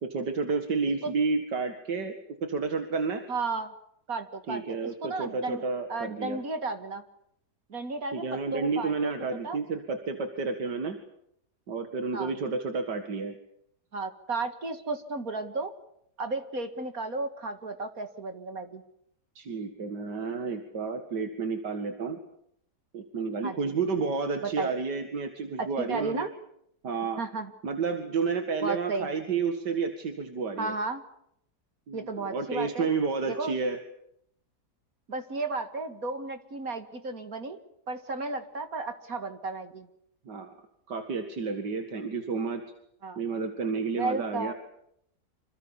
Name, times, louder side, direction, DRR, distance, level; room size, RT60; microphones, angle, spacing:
voice 1, 0.0-3.2 4.5-6.4 8.1-11.0 11.7-13.3 19.4-22.2 22.9-26.3 26.8-27.2 27.6-30.7 31.9-33.8 40.3-40.5 40.9-42.6 43.2-44.5, right 4 dB, 85° right, 6 dB, 2.6 m, -31 dB
voice 2, 3.3-3.7 4.1-5.6 5.9-7.0 7.7-9.6 12.1-12.3 13.9-15.7 16.2-18.8 23.4-23.8 24.4-24.7 25.6-26.3 27.2-27.5 28.6-29.1 30.6-31.0 31.9-32.9 33.3-33.5 35.1-37.6 37.9-39.9 43.0-43.2 43.9-44.5, right 3 dB, 55° right, 8 dB, 2.5 m, -33 dB
27.0 x 25.5 x 7.3 m, 0.74 s
omnidirectional pair, 1.8 m